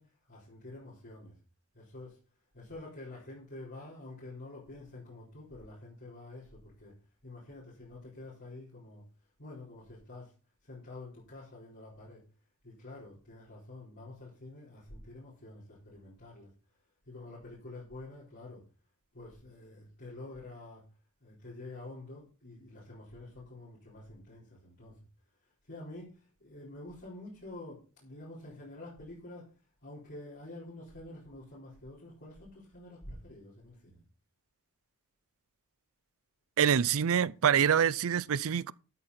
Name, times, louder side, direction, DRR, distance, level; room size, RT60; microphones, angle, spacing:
voice 1, 0.0-1.4 1.7-2.2 2.5-6.9 7.2-9.0 9.4-10.4 10.6-12.2 12.6-16.5 17.0-18.6 19.1-20.8 21.2-25.0 25.4-34.0, left 2 dB, 50° left, 4.7 m, -48 dB
voice 2, 36.6-38.7, right 8 dB, 65° right, 0.4 m, -26 dB
13.0 x 8.4 x 4.3 m
head